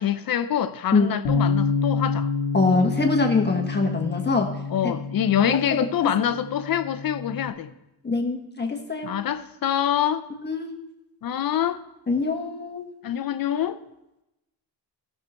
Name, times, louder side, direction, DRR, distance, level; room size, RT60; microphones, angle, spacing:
voice 1, 0.0-2.3 4.7-7.7 9.0-10.3 11.2-11.8 13.0-13.8, left 10 dB, 60° left, 0.6 m, -25 dB
Bass guitar, 1.2-7.5, left 4 dB, 90° left, 1.1 m, -28 dB
voice 2, 2.5-4.6 4.8-4.9 5.5-6.1 8.0-9.2 10.4-10.8 12.1-12.9, left 3 dB, 25° left, 1.5 m, -24 dB
15.0 x 6.7 x 4.3 m
cardioid pair, 90°, 41 cm